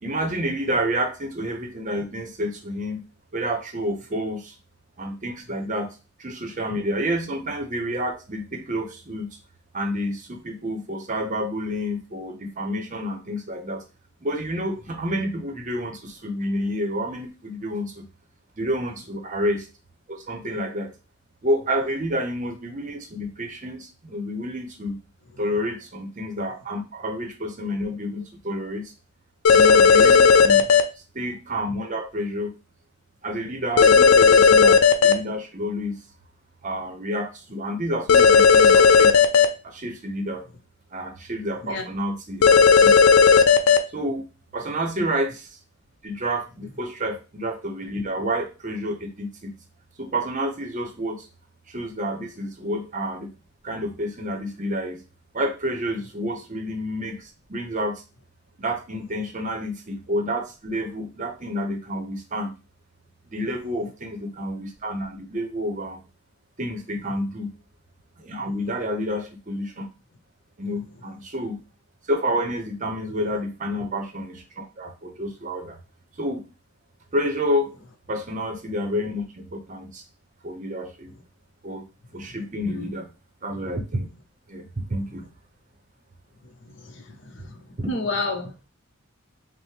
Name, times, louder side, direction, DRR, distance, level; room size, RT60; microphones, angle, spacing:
voice 1, 0.0-3.0 3.3-4.6 5.0-5.9 6.2-9.3 9.7-13.8 14.2-18.0 18.6-19.7 20.1-20.9 21.4-25.0 25.4-28.9 29.5-30.7 31.1-32.5 33.2-36.0 36.6-39.1 39.6-40.5 40.9-43.0 43.3-43.4 43.9-44.3 44.5-45.6 46.0-49.5 50.0-51.3 51.7-53.3 53.6-55.0 55.3-58.0 58.6-62.6 63.3-66.0 66.6-67.5 68.2-69.9 70.6-71.6 72.0-75.8 76.2-76.4 77.1-77.7 78.1-80.0 80.4-81.1 81.6-81.8 82.1-83.1 83.4-84.1 84.5-85.2 87.8-87.9, equal, 35° right, 6 dB, 0.6 m, -29 dB
sound 1, 29.4-30.8 33.8-35.1 38.1-39.4 42.4-43.8, left 5 dB, 90° left, 0.5 m, -13 dB
voice 2, 87.9-88.7, left 2 dB, 60° left, 4 dB, 0.8 m, -29 dB
5.5 x 2.0 x 3.3 m, 0.31 s
head